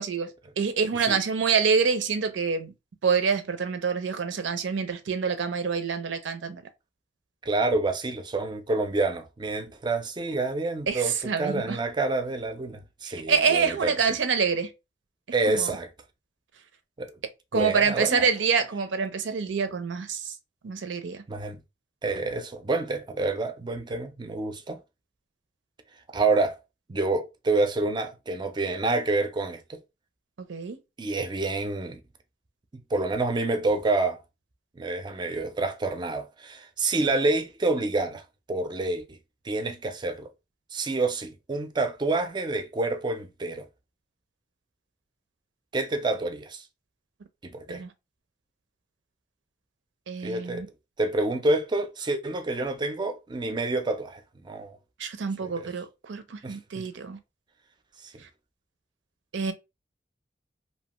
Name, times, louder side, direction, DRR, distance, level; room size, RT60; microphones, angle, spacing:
voice 1, 0.0-2.7 3.0-6.6 10.9-11.8 13.0-14.7 15.4-15.7 17.5-20.3 20.6-21.2 30.4-30.8 47.7-47.9 50.1-50.7 55.0-57.2 58.2-58.3 59.3-59.5, right 5 dB, 90° right, 0.5 m, -26 dB
voice 2, 7.4-13.9 15.3-15.9 17.0-17.1 17.5-18.3 21.3-21.6 22.0-24.8 26.1-26.6 26.9-29.8 31.0-32.0 32.9-34.2 34.8-38.2 38.5-39.2 39.4-40.3 40.7-43.7 45.7-46.6 47.4-47.8 50.2-50.6 51.0-54.8 55.6-55.7 56.4-56.9 58.0-58.2, right 2 dB, 25° right, 0.4 m, -28 dB
2.7 x 2.2 x 2.9 m
head